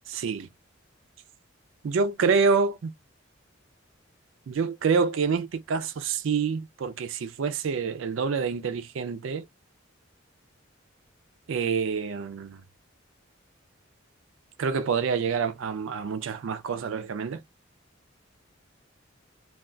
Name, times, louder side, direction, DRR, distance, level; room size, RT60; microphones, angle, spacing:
voice 1, 0.1-0.5 1.8-2.9 4.5-9.5 11.5-12.6 14.6-17.4, right 5 dB, 75° right, 0.4 m, -27 dB
2.3 x 2.2 x 3.6 m
head